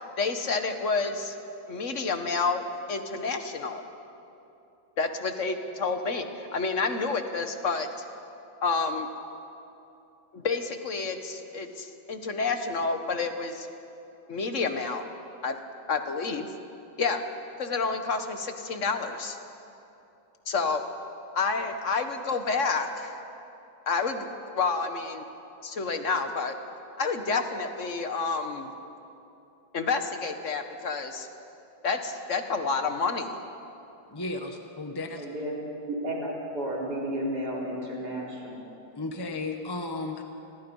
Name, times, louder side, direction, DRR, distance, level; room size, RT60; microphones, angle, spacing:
voice 1, 0.2-1.4 1.7-2.6 2.9-3.8 5.0-7.9 8.6-9.1 10.3-13.7 14.3-15.1 15.4-15.6 15.9-16.5 17.0-17.2 17.6-19.4 20.5-20.8 21.3-23.1 23.9-24.3 24.5-25.2 25.6-26.5 27.0-28.7 29.7-31.3 31.8-33.4, left 4 dB, 45° left, 7 dB, 1.6 m, -29 dB
voice 2, 34.1-35.2 38.9-40.2, left 2 dB, 15° left, 4 dB, 1.3 m, -34 dB
voice 3, 35.2-35.5 35.9-38.7, right 1 dB, 60° right, -4 dB, 5.0 m, -32 dB
29.0 x 22.0 x 5.5 m, 2.8 s
omnidirectional pair, 1.9 m